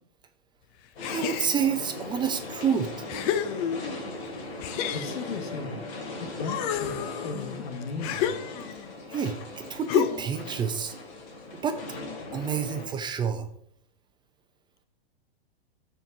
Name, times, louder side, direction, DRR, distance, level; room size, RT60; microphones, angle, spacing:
sound 1, 1.0-12.9, left 2 dB, 60° left, 2.7 m, -39 dB
sound 2, 1.0-1.9 2.5-2.6 3.1-4.1 4.6-6.0 6.4-8.9 9.9-10.4, left 10 dB, 35° left, 0.6 m, -31 dB
voice 1, 1.1-3.1 9.1-10.9 11.5-11.8 12.3-13.5, right 7 dB, 15° right, 7 dB, 0.6 m, -28 dB
voice 2, 4.9-5.8 6.2-6.9 7.2-8.3, left 4 dB, 85° left, 7 dB, 1.4 m, -36 dB
13.5 x 4.5 x 2.7 m, 0.70 s
hypercardioid pair, 135°, 31 cm